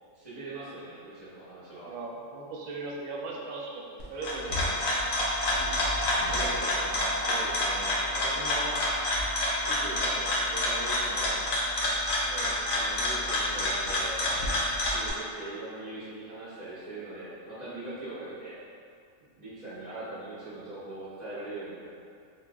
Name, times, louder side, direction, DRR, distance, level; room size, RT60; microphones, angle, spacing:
voice 1, 0.1-1.9 6.3-8.8 9.6-11.5 12.4-14.3 14.8-18.6 19.4-21.9, right 2 dB, 30° right, -11 dB, 0.7 m, -41 dB
voice 2, 1.8-3.8 4.1-4.7 12.2-12.5 18.1-18.3, right 3 dB, 85° right, -1 dB, 1.0 m, -38 dB
sound 1, 4.0-15.1, left 1 dB, 85° left, 1.1 m, -28 dB
4.2 x 2.6 x 2.2 m, 2.3 s
omnidirectional pair, 1.4 m